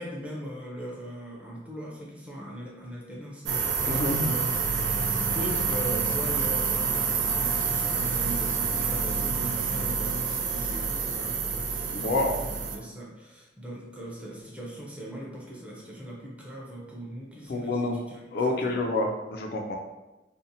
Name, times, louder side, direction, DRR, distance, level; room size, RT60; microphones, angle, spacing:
voice 1, 0.0-18.8, equal, 5° right, -4 dB, 0.4 m, -40 dB
sound 1, 3.5-12.8, right 5 dB, 80° right, 0.4 m, -28 dB
voice 2, 3.9-4.3 11.9-12.4 17.5-18.0 18.3-19.8, left 2 dB, 60° left, 2 dB, 0.3 m, -28 dB
2.6 x 2.0 x 2.6 m, 1.0 s
head